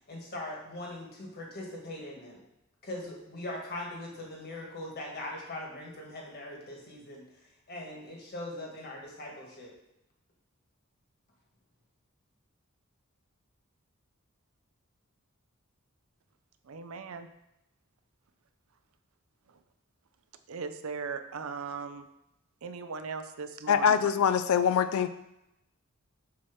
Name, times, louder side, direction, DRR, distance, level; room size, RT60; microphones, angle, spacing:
voice 1, 0.1-2.4 2.8-9.7, left 1 dB, 50° left, -1 dB, 1.8 m, -41 dB
voice 2, 16.6-17.3 19.5-19.6 20.5-22.0 22.6-23.9, right 5 dB, 75° right, 9 dB, 0.5 m, -38 dB
voice 3, 23.7-25.1, left 7 dB, 85° left, 11 dB, 0.4 m, -24 dB
7.1 x 3.1 x 6.0 m, 0.88 s
head